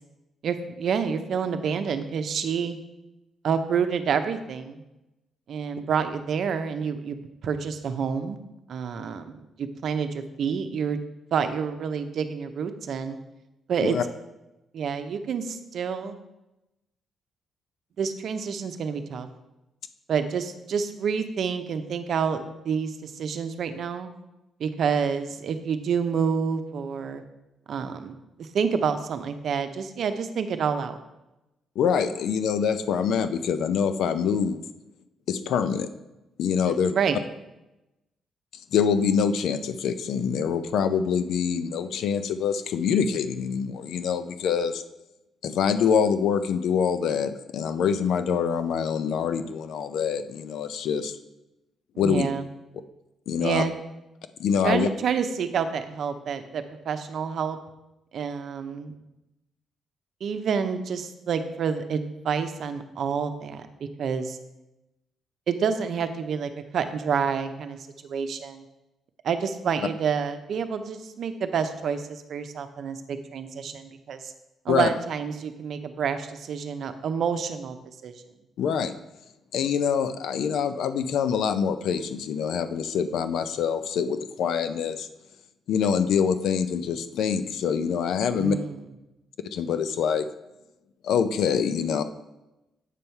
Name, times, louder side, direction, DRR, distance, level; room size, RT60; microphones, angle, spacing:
voice 1, 0.4-2.8 3.4-4.8 5.5-8.4 8.7-11.0 11.3-13.2 13.7-14.0 14.7-16.2 18.0-19.3 20.1-24.1 24.6-27.2 27.7-31.0 36.6-37.2 52.0-52.5 53.4-53.7 54.6-57.6 58.1-58.9 60.2-63.7 64.0-64.4 65.5-68.6 69.2-74.3 74.6-77.8 78.0-78.1 88.3-88.8, right 6 dB, 60° right, 9 dB, 0.7 m, -28 dB
voice 2, 31.8-34.6 35.3-35.9 36.4-36.9 38.7-44.8 45.4-51.1 52.0-52.3 53.3-53.6 54.4-54.9 74.7-74.9 78.6-78.9 79.5-85.1 85.7-88.6 89.5-90.3 91.0-92.0, left 7 dB, 75° left, 10 dB, 0.5 m, -25 dB
8.3 x 5.5 x 4.5 m, 0.96 s
cardioid pair, 95°, 0 cm